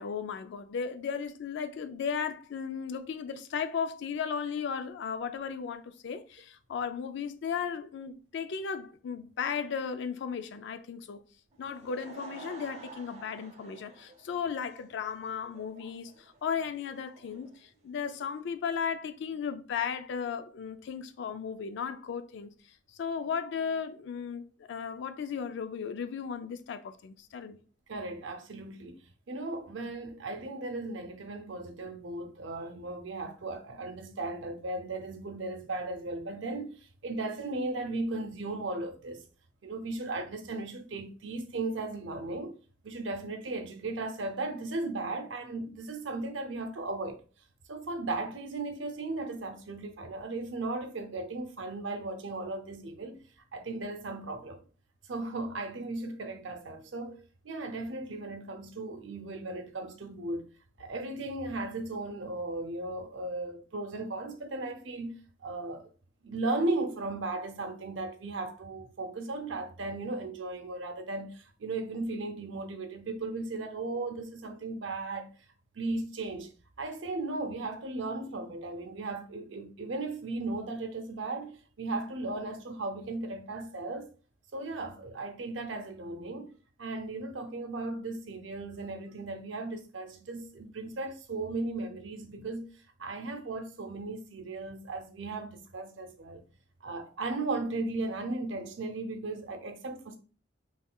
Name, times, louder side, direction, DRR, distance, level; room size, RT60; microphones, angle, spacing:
voice 1, 0.0-11.2 11.6-22.5 23.0-27.6, left 6 dB, 65° left, 0.3 m, -35 dB
Laughter / Crowd, 11.5-18.5, right 3 dB, 35° right, 0.6 m, -51 dB
voice 2, 27.9-29.0 29.3-39.2 39.6-42.6 42.8-47.2 47.7-53.2 53.5-54.6 55.1-60.5 60.8-65.2 65.4-65.9 66.2-75.3 75.7-76.5 76.8-84.1 84.5-92.7 93.0-96.4 96.8-100.2, right 2 dB, 80° right, 0.6 m, -36 dB
3.7 x 3.1 x 2.2 m
head